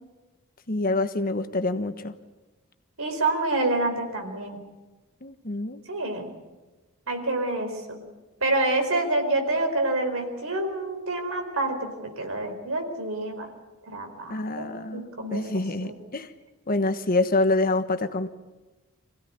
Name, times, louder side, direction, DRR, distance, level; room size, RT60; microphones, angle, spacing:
voice 1, 0.7-2.1 5.2-5.8 14.3-15.0 15.3-16.3 16.7-18.3, left 2 dB, 40° left, 9 dB, 1.2 m, -26 dB
voice 2, 3.0-4.6 5.9-6.3 7.1-8.0 8.4-13.5 13.9-15.4 15.8-15.9, right 2 dB, 65° right, 5 dB, 4.6 m, -27 dB
25.5 x 16.5 x 9.6 m, 1.2 s
head